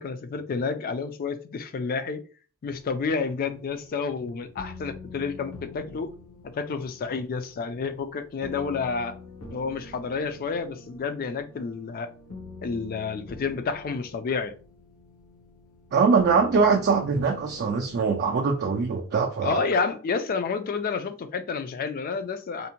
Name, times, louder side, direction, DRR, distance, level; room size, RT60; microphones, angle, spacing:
voice 1, 0.0-2.2 2.6-6.1 6.5-9.2 9.5-12.1 12.6-14.5 19.4-22.7, left 5 dB, 40° left, 0.3 m, -30 dB
sound 1, 2.7-19.1, left 3 dB, 70° left, 0.7 m, -46 dB
voice 2, 15.9-19.6, right 5 dB, 45° right, 0.4 m, -22 dB
2.6 x 2.1 x 2.8 m
head